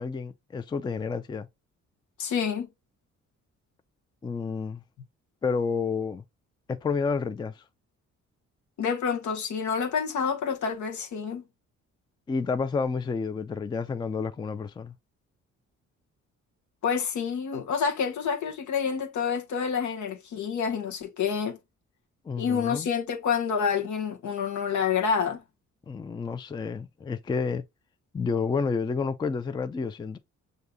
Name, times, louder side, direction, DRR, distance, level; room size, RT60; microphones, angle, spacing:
voice 1, 0.0-1.5 4.2-4.8 5.4-6.2 6.7-7.6 12.3-14.9 22.2-22.9 25.9-27.6 28.1-30.2, left 5 dB, 15° left, 0.4 m, -30 dB
voice 2, 2.2-2.7 8.8-11.4 16.8-21.6 22.4-25.4, left 6 dB, 75° left, 1.0 m, -28 dB
6.4 x 2.7 x 2.2 m
cardioid pair, 90°, 30 cm